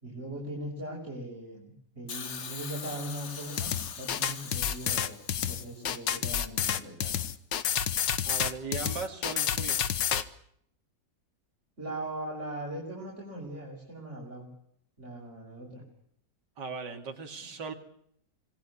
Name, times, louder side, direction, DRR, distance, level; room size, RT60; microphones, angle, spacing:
voice 1, 0.0-5.2 5.5-7.2 11.8-14.5 15.0-15.8, right 1 dB, 40° right, -3 dB, 6.3 m, -40 dB
Hiss, 2.1-6.2 7.2-7.3, left 6 dB, 45° left, 1.5 m, -43 dB
sound 1, 3.6-10.2, left 9 dB, 85° left, 1.9 m, -29 dB
voice 2, 8.2-9.8 16.6-17.7, right 4 dB, 75° right, 4 dB, 3.0 m, -38 dB
26.5 x 19.0 x 8.5 m, 0.69 s
omnidirectional pair, 1.9 m